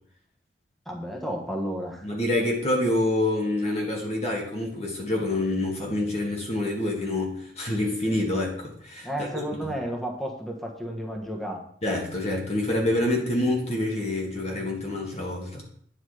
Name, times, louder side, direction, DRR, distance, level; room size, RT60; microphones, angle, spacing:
voice 1, 0.9-2.1 9.0-11.6, equal, ahead, 1 dB, 1.3 m, -32 dB
voice 2, 2.0-9.3 11.8-15.6, left 1 dB, 40° left, 0 dB, 1.9 m, -27 dB
9.9 x 6.1 x 5.0 m, 0.63 s
head